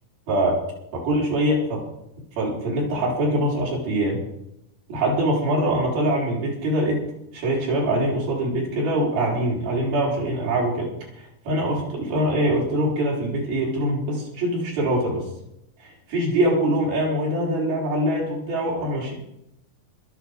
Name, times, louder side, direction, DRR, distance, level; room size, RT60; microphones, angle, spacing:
voice 1, 0.3-0.6 0.9-1.8 2.4-4.2 4.9-7.0 7.3-15.3 15.8-19.1, right 1 dB, 80° right, -4 dB, 6.0 m, -23 dB
15.0 x 12.5 x 5.1 m, 0.80 s
omnidirectional pair, 4.1 m